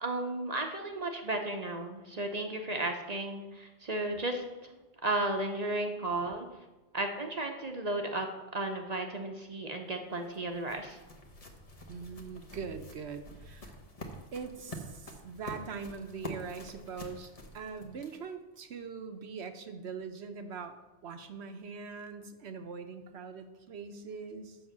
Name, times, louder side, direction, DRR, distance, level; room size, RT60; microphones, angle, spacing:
voice 1, 0.0-4.4 5.0-6.5 6.9-8.3 8.5-11.0, right 2 dB, 40° right, 3 dB, 0.8 m, -34 dB
sound 1, 9.9-18.4, left 1 dB, 35° left, 1.0 m, -47 dB
voice 2, 11.9-13.7 14.3-20.8 21.0-24.6, right 5 dB, 70° right, 7 dB, 1.0 m, -42 dB
7.9 x 5.7 x 6.7 m, 1.1 s
omnidirectional pair, 1.2 m